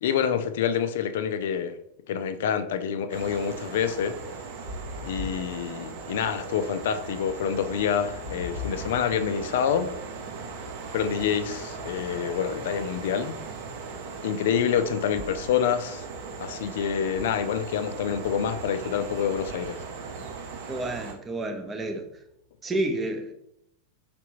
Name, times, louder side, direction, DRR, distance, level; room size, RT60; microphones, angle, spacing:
voice 1, 0.0-1.8 2.1-4.2 5.0-9.9 10.9-13.4 14.2-16.0 16.4-19.8, left 8 dB, 55° left, 0.4 m, -27 dB
sound 1, 3.1-21.1, right 5 dB, 50° right, 0.7 m, -39 dB
sound 2, 4.7-13.8 14.7-22.3, left 4 dB, 85° right, 1.4 m, -45 dB
voice 2, 20.7-22.0 22.6-23.3, right 2 dB, 15° right, 0.7 m, -30 dB
5.0 x 3.4 x 3.0 m
figure-of-eight pair, 90°, 0 cm